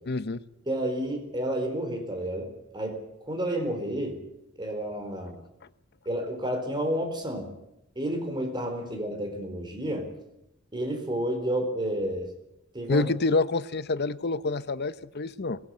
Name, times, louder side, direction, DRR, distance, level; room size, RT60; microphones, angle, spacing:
voice 1, 0.1-0.4 12.9-15.6, left 3 dB, 50° left, 14 dB, 0.8 m, -27 dB
voice 2, 0.7-3.0 3.3-4.2 4.6-5.3 6.0-7.5 8.0-10.1 10.7-12.3 12.7-13.1, right 1 dB, 20° right, 4 dB, 4.5 m, -30 dB
22.0 x 19.0 x 8.6 m, 0.84 s
head